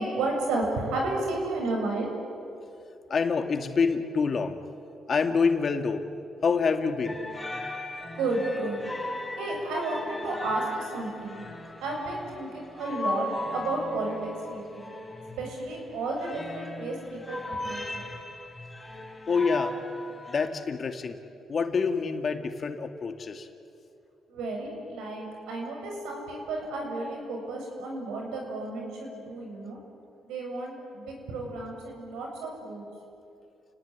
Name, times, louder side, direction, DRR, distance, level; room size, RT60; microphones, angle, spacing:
voice 1, 0.0-2.1 8.1-8.8 9.4-11.4 11.8-14.9 15.4-18.1 24.3-29.8 30.2-32.9, right 2 dB, 90° right, 1 dB, 7.6 m, -32 dB
voice 2, 3.1-4.6 5.1-6.1 6.4-7.2 19.3-19.8 20.3-21.2 21.5-23.5, left 5 dB, 45° left, 7 dB, 2.2 m, -26 dB
sound 1, 7.0-20.5, left 2 dB, 15° left, 4.4 m, -38 dB
29.5 x 19.0 x 9.7 m, 2.6 s
cardioid pair, 90°, 0 cm